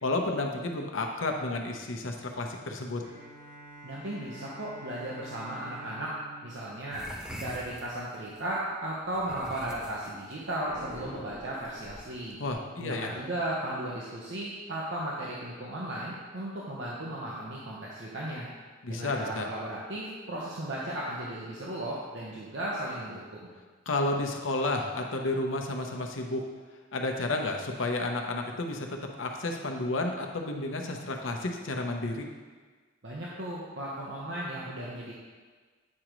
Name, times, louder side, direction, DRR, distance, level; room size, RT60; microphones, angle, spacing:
voice 1, 0.0-3.0 12.4-13.1 18.8-19.5 23.9-26.4 26.9-32.3, left 2 dB, 90° left, 3 dB, 0.8 m, -31 dB
Bowed string instrument, 3.0-7.9, right 1 dB, 40° right, 1.3 m, -49 dB
voice 2, 3.8-6.1 6.4-12.4 12.8-18.5 18.9-23.5 33.0-35.1, right 1 dB, 65° right, -5 dB, 0.9 m, -36 dB
sound 1, 6.9-8.4 9.1-12.5, equal, 5° right, 0.7 m, -45 dB
Boom, 10.6-12.5, left 1 dB, 25° right, 1.9 m, -45 dB
8.6 x 5.0 x 3.0 m, 1.4 s
head